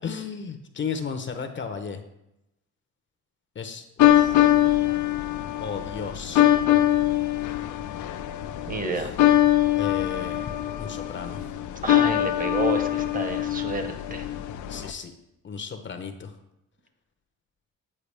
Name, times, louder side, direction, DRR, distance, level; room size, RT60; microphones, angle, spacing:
voice 1, 0.0-2.0 3.5-4.6 5.6-6.4 9.0-9.1 9.8-10.5 10.8-11.5 14.7-15.1 15.4-16.4, left 6 dB, 40° left, 6 dB, 0.7 m, -34 dB
sound 1, 4.0-14.9, left 13 dB, 80° left, 0.6 m, -23 dB
voice 2, 8.7-9.2 11.8-14.3, right 2 dB, 30° right, 6 dB, 1.0 m, -30 dB
8.5 x 4.7 x 3.3 m, 0.87 s
cardioid pair, 90°, 30 cm